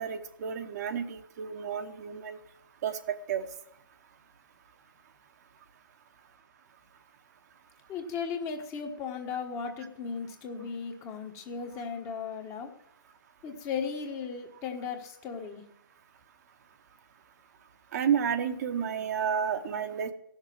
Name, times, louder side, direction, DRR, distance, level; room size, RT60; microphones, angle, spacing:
voice 1, 0.0-2.4 2.8-3.5 17.9-20.1, right 8 dB, 45° right, 7 dB, 1.0 m, -31 dB
voice 2, 7.9-12.7 13.4-15.6, left 6 dB, 25° left, 4 dB, 1.3 m, -36 dB
16.0 x 6.6 x 7.5 m, 0.79 s
figure-of-eight pair, 135°, 12 cm